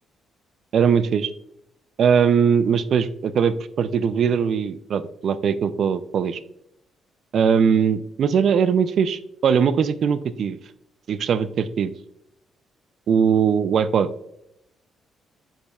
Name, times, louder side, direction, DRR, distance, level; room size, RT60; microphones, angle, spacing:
voice 1, 0.7-1.3 2.0-6.4 7.3-10.6 11.1-11.9 13.1-14.1, right 7 dB, 60° right, 14 dB, 0.4 m, -20 dB
8.6 x 5.3 x 2.3 m, 0.78 s
cardioid pair, 90°, 0 cm